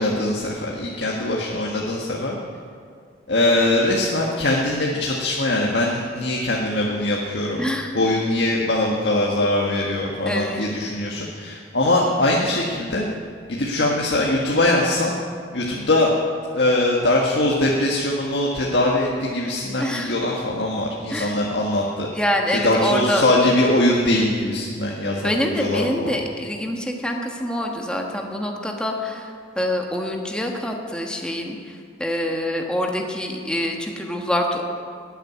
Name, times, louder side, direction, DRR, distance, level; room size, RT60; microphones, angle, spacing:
voice 1, 0.0-2.3 3.3-7.7 7.9-13.0 13.5-15.2 15.5-16.1 16.5-22.1 22.5-26.1, left 1 dB, 75° left, -3 dB, 1.6 m, -22 dB
voice 2, 7.6-7.9 10.2-10.6 19.8-20.1 21.1-21.4 22.1-23.2 25.2-34.6, left 1 dB, 5° left, 1 dB, 1.3 m, -25 dB
13.0 x 9.1 x 9.6 m, 2.1 s
head